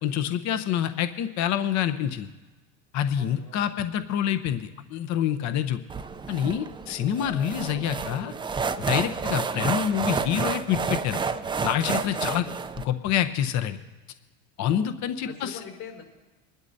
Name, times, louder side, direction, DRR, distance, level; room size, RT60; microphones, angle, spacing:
voice 1, 0.0-2.3 2.9-5.8 6.3-8.3 8.9-11.2 11.6-12.5 12.8-13.8 14.6-15.6, left 10 dB, 50° left, 10 dB, 0.8 m, -27 dB
voice 2, 3.1-3.6 5.4-5.6 14.6-14.8 15.2-16.0, left 6 dB, 65° left, 0 dB, 4.9 m, -43 dB
sound 1, 5.9-12.8, right 5 dB, 15° right, 0.4 m, -30 dB
24.0 x 12.0 x 2.7 m, 1.2 s
supercardioid pair, 100°, 37 cm